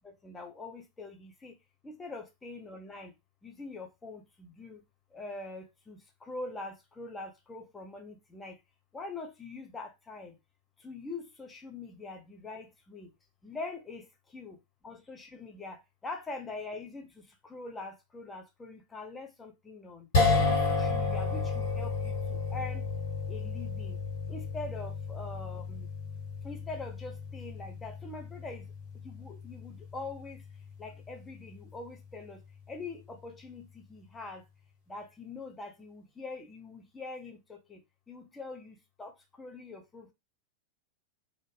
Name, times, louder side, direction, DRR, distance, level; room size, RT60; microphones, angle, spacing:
voice 1, 0.2-1.5 1.8-3.1 3.4-4.8 5.1-6.0 6.3-8.5 8.9-10.3 10.8-13.1 13.4-14.1 14.3-14.6 14.8-17.1 17.5-20.1 20.4-22.8 23.3-24.0 24.3-25.9 26.4-28.6 29.0-30.4 30.8-32.4 32.7-34.4 34.9-37.8 38.1-39.1 39.4-40.1, left 3 dB, 15° left, 0.6 m, -43 dB
sound 1, 20.1-32.5, left 4 dB, 60° left, 1.6 m, -33 dB
2.5 x 2.0 x 3.3 m
figure-of-eight pair, 90°, 0 cm